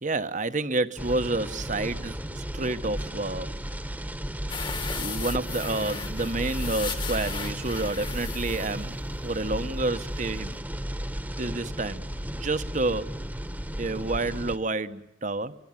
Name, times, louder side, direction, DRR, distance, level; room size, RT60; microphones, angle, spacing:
voice 1, 0.0-3.5 4.9-9.0 9.2-10.6 11.4-12.0 12.3-13.1 13.8-15.6, right 2 dB, 40° right, 11 dB, 1.2 m, -29 dB
sound 1, 1.0-14.6, equal, 10° right, 1.3 m, -34 dB
sound 2, 4.5-9.8 10.1-10.2 10.5-10.6, left 5 dB, 25° left, 1.5 m, -37 dB
26.0 x 24.5 x 9.0 m, 0.78 s
head